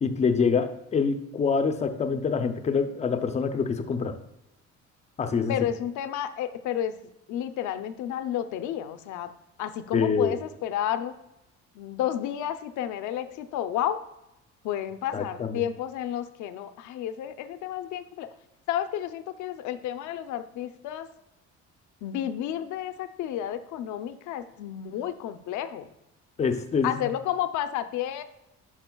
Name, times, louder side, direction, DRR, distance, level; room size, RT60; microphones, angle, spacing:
voice 1, 0.0-4.2 5.2-5.7 9.9-10.4 15.1-15.6 26.4-27.1, left 5 dB, 25° left, 8 dB, 0.5 m, -26 dB
voice 2, 5.5-6.9 7.3-9.3 9.6-11.1 11.7-14.0 14.6-18.3 18.7-21.1 22.0-25.9 26.8-28.2, left 11 dB, 80° left, 11 dB, 0.6 m, -31 dB
10.5 x 5.9 x 2.3 m, 0.88 s
cardioid pair, 160°, 29 cm